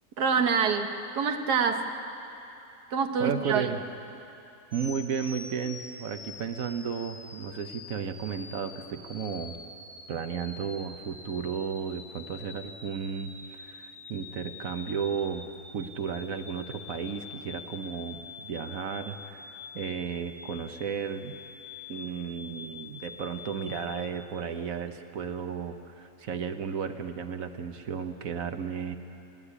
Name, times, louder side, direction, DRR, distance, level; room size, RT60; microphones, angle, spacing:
voice 1, 0.2-1.8 2.9-3.6, right 6 dB, 85° right, 6 dB, 1.7 m, -26 dB
voice 2, 3.2-3.8 4.7-9.6 10.1-15.4 15.7-19.5 19.7-21.4 21.9-29.0, right 7 dB, 60° right, 8 dB, 1.3 m, -34 dB
sound 1, 4.7-24.1, left 4 dB, 45° left, 1.7 m, -45 dB
29.0 x 10.0 x 10.0 m, 2.8 s
omnidirectional pair, 1.7 m